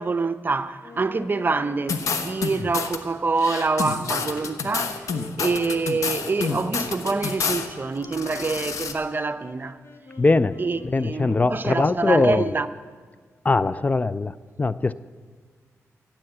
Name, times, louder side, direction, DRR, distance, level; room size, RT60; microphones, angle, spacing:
voice 1, 0.0-5.0 5.4-9.8 10.6-12.7, right 3 dB, 40° right, 0.7 m, -26 dB
Wind instrument woodwind instrument, 0.8-11.9, left 3 dB, 60° left, 1.3 m, -45 dB
sound 1, 1.9-3.0 3.4-7.7 8.0-8.9, left 5 dB, 85° left, 1.1 m, -28 dB
voice 2, 10.2-12.5 13.4-14.9, left 3 dB, 30° left, 0.4 m, -22 dB
15.0 x 8.9 x 7.8 m
cardioid pair, 70°, 5 cm